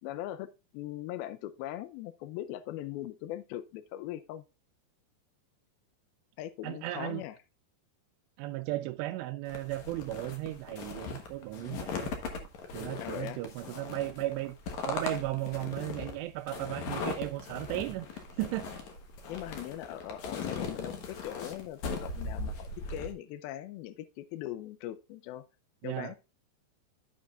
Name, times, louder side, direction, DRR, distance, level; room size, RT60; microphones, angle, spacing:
voice 1, 0.0-4.4 6.4-7.4 13.0-13.4 19.3-25.4 25.8-26.2, left 13 dB, 85° left, 2.2 m, -40 dB
voice 2, 6.6-7.2 8.4-12.1 12.7-14.6 14.9-18.8 25.8-26.1, right 16 dB, 85° right, 2.7 m, -35 dB
sound 1, 9.5-23.1, left 4 dB, 70° left, 1.8 m, -39 dB
14.0 x 5.1 x 2.4 m
omnidirectional pair, 5.0 m